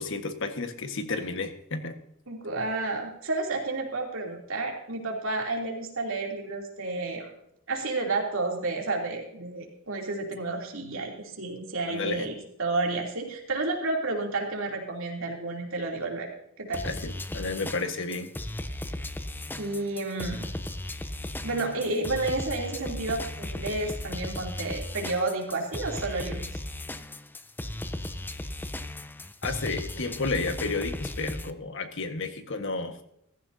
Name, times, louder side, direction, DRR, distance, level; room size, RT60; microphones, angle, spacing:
voice 1, 0.0-1.9 11.9-12.3 16.8-18.3 29.4-33.0, left 3 dB, 65° left, 7 dB, 1.5 m, -32 dB
voice 2, 2.3-7.3 7.7-16.3 16.6-16.8 19.6-20.4 21.4-26.4, right 2 dB, 65° right, 0 dB, 3.0 m, -31 dB
sound 1, 16.7-31.5, left 1 dB, 10° left, 0.6 m, -36 dB
15.5 x 14.5 x 2.8 m, 0.76 s
head